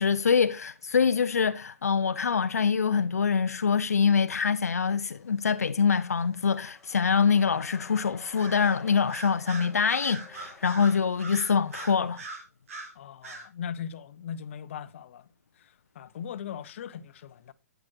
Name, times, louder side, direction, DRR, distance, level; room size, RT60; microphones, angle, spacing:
voice 1, 0.0-12.2, left 6 dB, 80° left, 0.5 m, -25 dB
sound 1, 4.8-12.4, left 4 dB, 10° left, 1.8 m, -53 dB
Bird vocalization bird call bird song, 8.4-8.8 9.1-12.9 13.2-13.5, right 3 dB, 65° right, 4.0 m, -41 dB
voice 2, 13.0-15.3 15.6-17.5, left 8 dB, 55° left, 0.8 m, -39 dB
10.5 x 9.2 x 2.9 m
hypercardioid pair, 130°, 8 cm